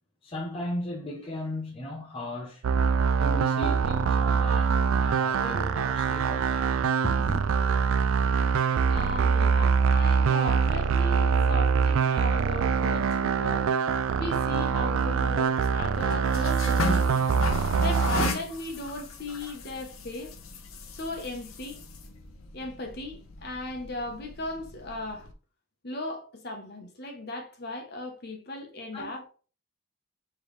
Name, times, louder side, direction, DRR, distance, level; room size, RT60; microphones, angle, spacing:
voice 1, 0.2-2.6 3.2-6.7 7.0-7.5 28.9-29.1, left 1 dB, 25° left, 0.8 m, -36 dB
sound 1, 2.6-18.3, right 6 dB, 75° right, 0.3 m, -24 dB
voice 2, 8.2-13.7 14.1-17.2 17.8-20.3 20.9-21.8 22.5-25.3 25.8-29.3, left 2 dB, 50° left, 1.1 m, -37 dB
sound 2, 14.1-25.3, left 3 dB, 80° left, 0.8 m, -37 dB
4.5 x 3.3 x 3.2 m
head